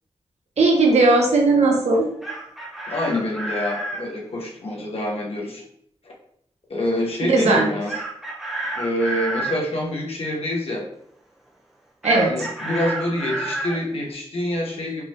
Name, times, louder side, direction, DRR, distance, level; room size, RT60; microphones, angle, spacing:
voice 1, 0.6-2.1 7.2-7.6 12.0-12.3, right 3 dB, 85° right, 0 dB, 1.0 m, -17 dB
Chicken rooster, 2.0-4.0 7.9-9.6 12.0-13.8, right 2 dB, 5° right, 0.9 m, -30 dB
voice 2, 2.9-5.6 6.0-6.1 6.7-7.9 8.7-10.9 12.2-15.0, left 1 dB, 65° left, -2 dB, 1.2 m, -26 dB
5.2 x 3.0 x 2.9 m, 0.68 s
wide cardioid pair, 115°, 11 cm